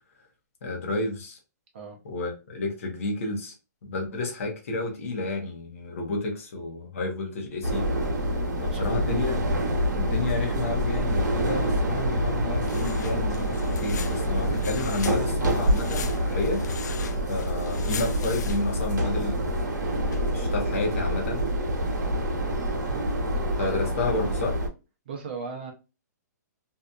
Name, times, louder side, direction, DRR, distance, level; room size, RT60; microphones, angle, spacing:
voice 1, 0.6-1.4 2.0-3.5 3.8-7.9 8.6-9.4 9.9-16.6 17.3-19.6 20.3-21.5 23.6-24.6, left 2 dB, 45° left, 0.9 m, -31 dB
sound 1, 7.6-24.7, equal, 85° right, 0.9 m, -27 dB
voice 2, 8.7-9.1 22.8-23.8 25.1-25.7, right 5 dB, 35° right, 0.6 m, -39 dB
sound 2, 12.3-20.8, left 5 dB, 70° left, 0.4 m, -39 dB
2.7 x 2.3 x 2.3 m
hypercardioid pair, 180°, 10 cm